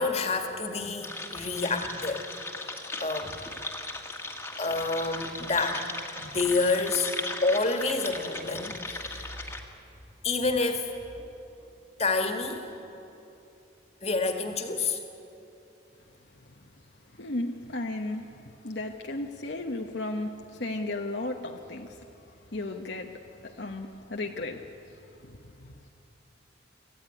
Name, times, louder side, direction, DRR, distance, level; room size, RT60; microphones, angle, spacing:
voice 1, 0.0-2.3 3.0-3.4 4.6-5.8 6.2-7.1 7.4-9.3 10.2-10.9 11.2-11.3 12.0-12.6 14.0-15.0, left 3 dB, 35° left, 5 dB, 2.0 m, -28 dB
sound 1, 1.0-9.6, left 2 dB, 10° left, 1.7 m, -37 dB
voice 2, 17.2-18.3 18.6-22.0 22.5-23.1 23.4-24.7 25.2-25.7, left 2 dB, 60° left, 2 dB, 1.1 m, -34 dB
25.0 x 15.5 x 9.8 m, 2.9 s
head